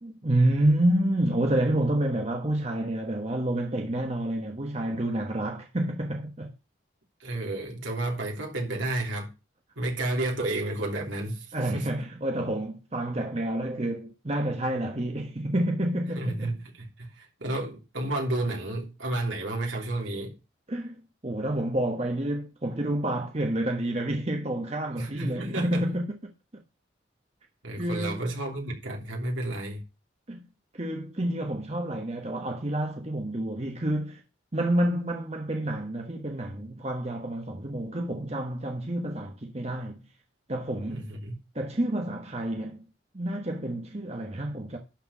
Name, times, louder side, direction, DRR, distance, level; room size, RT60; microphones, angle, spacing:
voice 1, 0.0-6.5 11.5-16.5 20.7-26.3 27.8-28.2 30.3-30.5 30.7-34.2 34.5-40.0 40.5-41.1 41.5-42.8 43.1-44.8, right 1 dB, 35° right, 1.2 m, -29 dB
voice 2, 7.2-9.3 9.8-12.0 16.2-20.4 25.0-25.8 27.6-29.8 40.9-41.4, right 1 dB, 80° right, 3.3 m, -31 dB
11.5 x 4.6 x 7.1 m
head